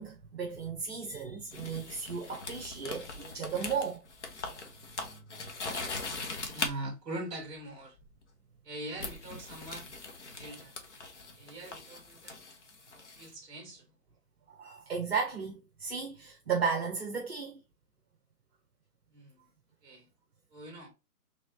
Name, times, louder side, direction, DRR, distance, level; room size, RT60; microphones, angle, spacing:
voice 1, 0.0-4.0 6.0-6.1 6.5-6.6 14.5-17.6, right 5 dB, 40° right, 0.9 m, -35 dB
sound 1, 1.5-6.7 8.0-8.2 9.0-13.3, left 3 dB, 45° left, 1.0 m, -41 dB
voice 2, 6.5-8.0 8.6-9.9 10.3-10.8 11.3-12.4 13.2-13.9 19.1-19.5 19.8-20.1 20.5-20.9, right 1 dB, 15° right, 1.7 m, -42 dB
3.6 x 3.2 x 2.8 m
hypercardioid pair, 165°, 48 cm